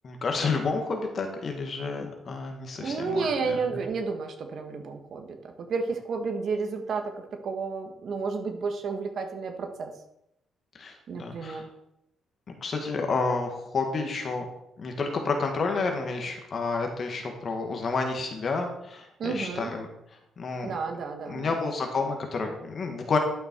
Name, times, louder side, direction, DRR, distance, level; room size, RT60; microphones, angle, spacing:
voice 1, 0.0-3.8 10.7-11.6 12.6-14.4 14.8-19.9 20.4-20.7 21.3-23.2, left 4 dB, 40° left, 3 dB, 1.6 m, -30 dB
voice 2, 2.8-9.9 11.1-11.7 19.2-19.7 20.6-21.5, right 4 dB, 55° right, 5 dB, 1.7 m, -31 dB
11.5 x 6.6 x 4.6 m, 0.80 s
cardioid pair, 120°, 0 cm